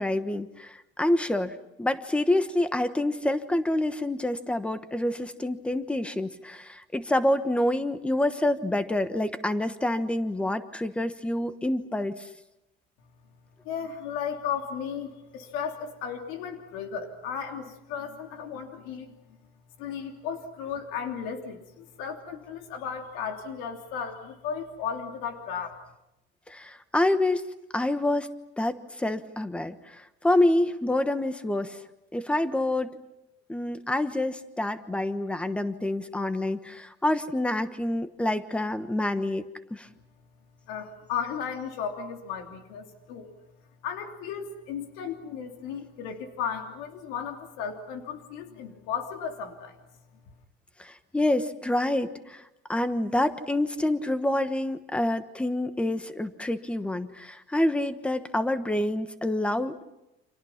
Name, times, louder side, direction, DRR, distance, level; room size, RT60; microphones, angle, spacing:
voice 1, 0.0-12.3 26.5-27.4 27.7-28.3 28.6-31.8 32.1-32.9 33.5-39.4 39.7-39.9 50.8-52.4 52.7-59.8, left 1 dB, 5° left, 10 dB, 1.2 m, -27 dB
voice 2, 13.6-19.4 19.8-25.8 40.7-43.3 43.8-49.8, left 7 dB, 90° left, 4 dB, 3.1 m, -35 dB
30.0 x 27.5 x 5.9 m, 0.90 s
cardioid pair, 165°, 21 cm